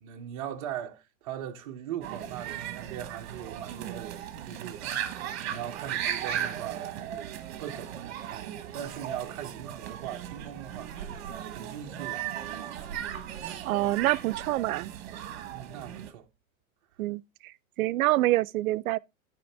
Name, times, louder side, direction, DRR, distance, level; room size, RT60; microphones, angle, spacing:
voice 1, 0.0-11.1 11.5-12.2 15.5-16.3, right 10 dB, 25° right, 0.7 m, -40 dB
sound 1, 2.0-16.1, right 10 dB, 50° right, 1.1 m, -37 dB
voice 2, 13.6-14.9 17.0-17.5 17.8-19.0, right 17 dB, 85° right, 0.5 m, -26 dB
10.5 x 5.0 x 3.2 m
supercardioid pair, 175°, 41 cm